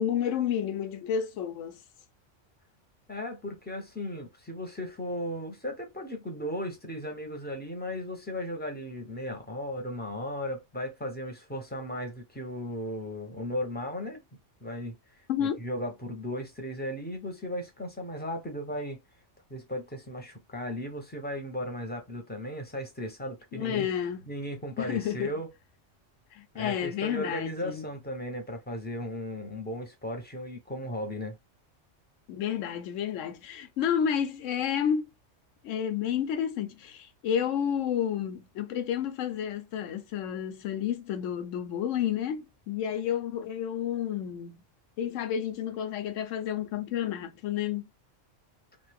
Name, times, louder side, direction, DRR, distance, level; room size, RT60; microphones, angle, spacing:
voice 1, 0.0-1.8 15.3-15.6 23.5-24.3 24.8-25.3 26.3-27.9 32.3-35.1 35.6-44.6 45.0-47.9, left 9 dB, 85° left, 1.0 m, -30 dB
voice 2, 3.1-14.2 14.6-15.0 15.4-19.0 19.5-23.9 24.3-25.5 26.6-31.4, equal, 10° left, 0.7 m, -36 dB
2.6 x 2.5 x 3.4 m
omnidirectional pair, 1.3 m